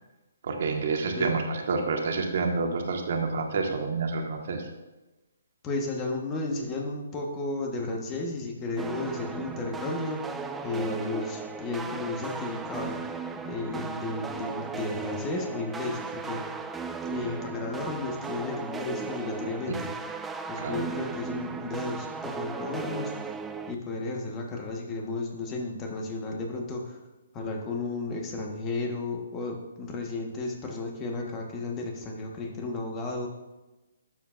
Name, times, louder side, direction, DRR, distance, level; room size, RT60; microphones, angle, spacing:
voice 1, 0.4-4.7 10.9-11.0 20.6-20.8, right 4 dB, 55° right, 2 dB, 1.5 m, -28 dB
voice 2, 5.6-10.3 10.6-13.0 13.4-16.5 17.0-19.9 20.5-23.1 23.7-27.0 27.3-33.3, left 3 dB, 20° left, 1 dB, 1.3 m, -33 dB
sound 1, 8.8-23.7, right 5 dB, 10° right, 0.3 m, -36 dB
12.0 x 7.3 x 2.6 m, 1.1 s
hypercardioid pair, 155°, 0 cm